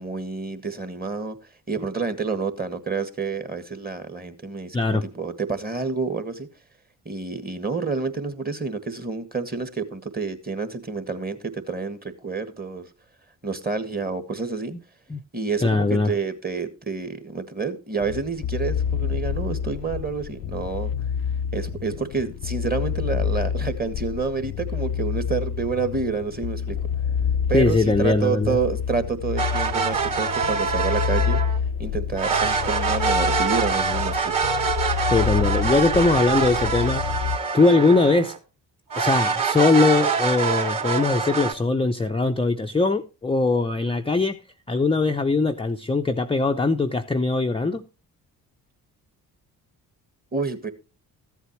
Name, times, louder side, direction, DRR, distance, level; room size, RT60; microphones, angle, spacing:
voice 1, 0.0-1.4 1.7-6.5 7.0-12.9 13.4-14.7 15.3-20.9 21.5-26.8 27.5-31.4 31.8-34.3 50.3-50.7, right 4 dB, 20° right, 1.5 m, -28 dB
voice 2, 4.7-5.1 15.1-15.2 15.6-16.1 27.5-28.6 35.1-37.2 37.5-38.4 38.9-44.4 44.7-47.8, left 3 dB, 10° left, 0.6 m, -21 dB
sound 1, 18.0-37.4, left 7 dB, 55° left, 0.6 m, -28 dB
sound 2, 29.4-31.6 32.2-38.4 38.9-41.5, right 5 dB, 45° right, 3.1 m, -25 dB
13.5 x 8.2 x 3.0 m
hypercardioid pair, 45°, 44 cm